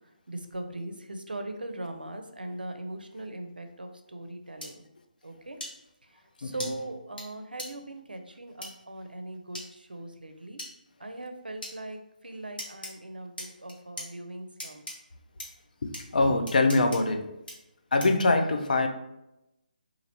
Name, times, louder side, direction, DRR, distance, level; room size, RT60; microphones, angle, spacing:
voice 1, 0.3-4.8 5.2-5.6 6.4-10.6 11.0-14.8, right 1 dB, 90° right, 6 dB, 0.4 m, -40 dB
sound 1, 4.6-4.7 5.6-5.7 6.6-6.7 7.2-7.3 7.6-7.7 8.6-8.7 9.5-9.7 10.6-10.7 11.6-11.7 12.6-12.9 13.4-14.1 14.6-14.9 15.4-15.5 15.9-16.0 16.5-17.0 17.5-17.6 18.0-18.2, left 1 dB, 85° left, 1.1 m, -38 dB
voice 2, 16.1-17.3 17.9-18.9, left 2 dB, 65° left, 6 dB, 0.4 m, -23 dB
2.9 x 2.4 x 2.8 m, 0.89 s
figure-of-eight pair, 150°, 5 cm